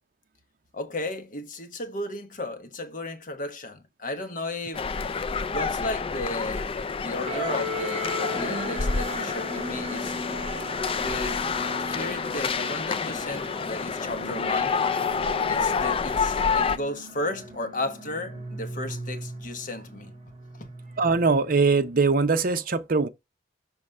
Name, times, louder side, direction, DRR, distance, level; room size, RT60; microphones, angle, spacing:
voice 1, 0.7-4.9 5.5-6.7 7.0-10.1 10.9-11.5 11.8-14.8 15.5-20.1 20.6-20.7, left 2 dB, 45° left, 1.0 m, -34 dB
sound 1, 4.7-16.8, left 5 dB, 30° left, 0.4 m, -28 dB
sound 2, 7.3-22.0, equal, 35° right, 2.1 m, -38 dB
voice 2, 21.0-23.1, right 4 dB, 50° right, 0.7 m, -22 dB
6.3 x 3.2 x 5.4 m
head